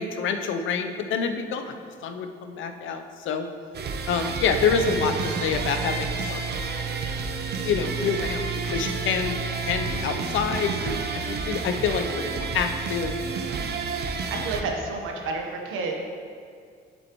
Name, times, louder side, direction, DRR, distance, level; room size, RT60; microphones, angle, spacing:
voice 1, 0.0-3.5 4.1-6.6 7.6-9.4 9.7-13.4 14.3-14.5, left 6 dB, 75° left, 6 dB, 0.7 m, -27 dB
sound 1, 3.7-14.6, right 4 dB, 55° right, 0.6 m, -30 dB
voice 2, 14.3-16.0, right 3 dB, 85° right, 1 dB, 1.1 m, -30 dB
8.0 x 7.4 x 3.0 m, 2.2 s
cardioid pair, 90°, 20 cm